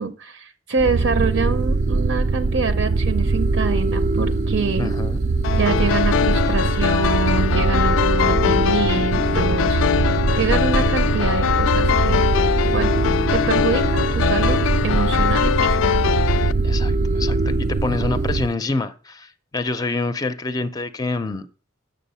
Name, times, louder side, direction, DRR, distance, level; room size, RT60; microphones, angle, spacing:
voice 1, 0.0-4.9 5.5-12.2 12.6-12.9 13.3-15.8, right 4 dB, 80° right, 0.7 m, -25 dB
sound 1, 0.8-18.5, right 3 dB, 40° right, 0.3 m, -21 dB
voice 2, 4.8-5.2 16.6-21.5, left 3 dB, 20° left, 0.5 m, -26 dB
sound 2, 5.4-16.5, left 8 dB, 80° left, 0.3 m, -22 dB
7.3 x 6.7 x 5.5 m
head